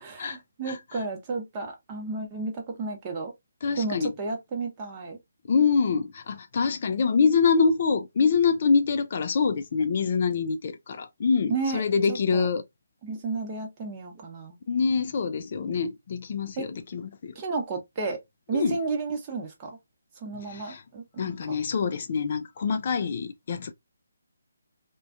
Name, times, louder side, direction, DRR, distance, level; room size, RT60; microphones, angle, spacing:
voice 1, 0.0-3.3 3.8-5.2 11.5-11.8 12.1-12.5 13.0-14.6 16.6-16.7 17.4-18.2 18.5-19.8 20.2-21.3, right 4 dB, 25° right, 0.8 m, -32 dB
voice 2, 0.6-1.0 3.6-4.1 5.4-12.7 14.7-17.3 18.5-18.8 20.3-20.8 21.2-23.7, left 5 dB, 45° left, 0.3 m, -25 dB
2.4 x 2.2 x 2.3 m
figure-of-eight pair, 150°, 0 cm